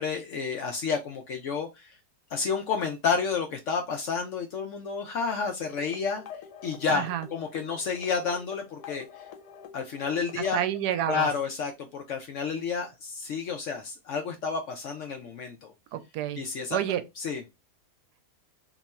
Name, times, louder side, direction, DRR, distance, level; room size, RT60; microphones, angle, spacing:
voice 1, 0.0-2.0 2.3-6.2 6.6-9.2 9.7-10.6 11.1-15.7 16.4-16.8 17.2-17.4, left 5 dB, 70° left, 0.7 m, -30 dB
sound 1, 5.6-10.8, left 8 dB, 90° left, 1.2 m, -46 dB
voice 2, 6.9-7.3 10.4-11.3 15.9-16.4 16.7-17.0, right 11 dB, 85° right, 1.1 m, -29 dB
2.9 x 2.3 x 4.1 m
omnidirectional pair, 1.7 m